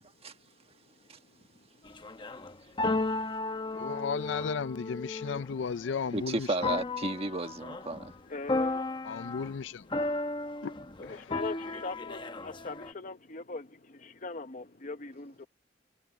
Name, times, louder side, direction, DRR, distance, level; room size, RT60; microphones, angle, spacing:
sound 1, 1.8-6.1 6.6-8.2 8.5-9.5 9.9-12.9, left 2 dB, 25° left, 0.9 m, -34 dB
voice 1, 2.6-3.9 8.0-9.1 10.1-10.6 11.0-15.5, left 3 dB, 45° left, 1.1 m, -42 dB
voice 2, 3.7-6.7 9.0-9.9 10.6-10.7 11.0-11.4, left 5 dB, 75° left, 0.5 m, -35 dB
voice 3, 6.1-8.1, right 2 dB, 30° right, 1.4 m, -33 dB
head